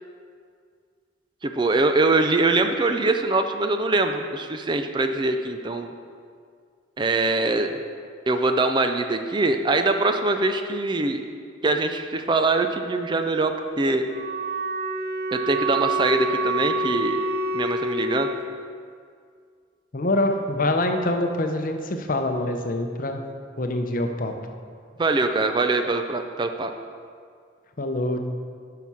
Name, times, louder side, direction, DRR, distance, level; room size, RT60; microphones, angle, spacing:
voice 1, 1.4-5.9 7.0-7.8 8.3-11.2 11.6-14.0 15.3-17.2 17.5-18.3 25.0-26.7, right 2 dB, 25° right, 7 dB, 0.4 m, -23 dB
Wind instrument woodwind instrument, 14.0-18.4, right 2 dB, 55° right, 0.7 m, -27 dB
voice 2, 19.9-23.2 23.6-24.3 27.8-28.2, left 1 dB, 45° left, 5 dB, 0.7 m, -25 dB
9.4 x 5.8 x 5.5 m, 2.1 s
head